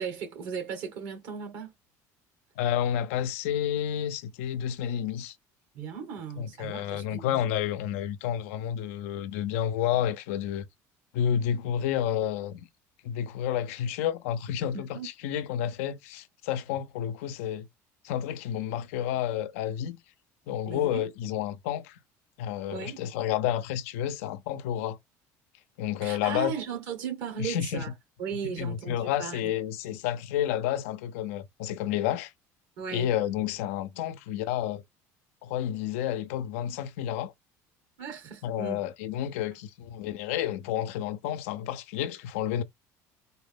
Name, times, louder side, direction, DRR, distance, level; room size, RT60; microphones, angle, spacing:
voice 1, 0.0-1.7 5.7-7.5 14.7-15.1 20.7-21.0 22.7-23.0 26.0-27.9 28.2-29.4 32.8-33.1 38.0-38.8, right 7 dB, 70° right, 1.8 m, -36 dB
voice 2, 2.6-5.3 6.4-10.7 11.1-12.7 13.0-17.7 18.0-20.0 20.5-22.0 22.4-25.0 25.8-26.5 27.4-27.8 28.4-32.3 32.9-34.8 35.4-37.3 38.4-42.6, left 10 dB, 90° left, 0.5 m, -30 dB
4.1 x 2.0 x 3.6 m
supercardioid pair, 100°, 7 cm